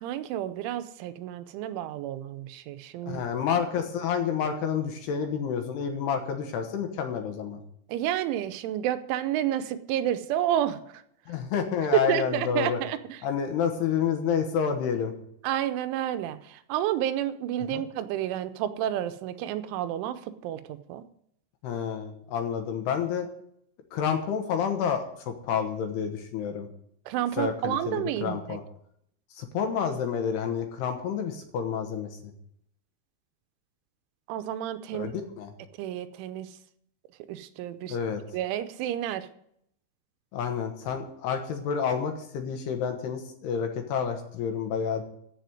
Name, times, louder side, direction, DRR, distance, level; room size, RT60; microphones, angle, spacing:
voice 1, 0.0-3.2 7.9-10.8 11.9-13.2 15.4-20.6 20.9-21.0 27.1-28.6 34.3-35.2 35.8-36.5 37.3-38.0 38.3-39.3, right 12 dB, 85° right, 11 dB, 3.2 m, -30 dB
voice 2, 3.1-7.6 11.3-12.8 13.2-15.1 17.7-17.8 21.6-23.3 23.9-26.7 27.4-28.6 29.3-32.3 34.9-35.5 37.9-38.2 40.3-45.0, left 7 dB, 70° left, 5 dB, 2.8 m, -29 dB
14.5 x 5.0 x 9.3 m, 0.71 s
omnidirectional pair, 5.4 m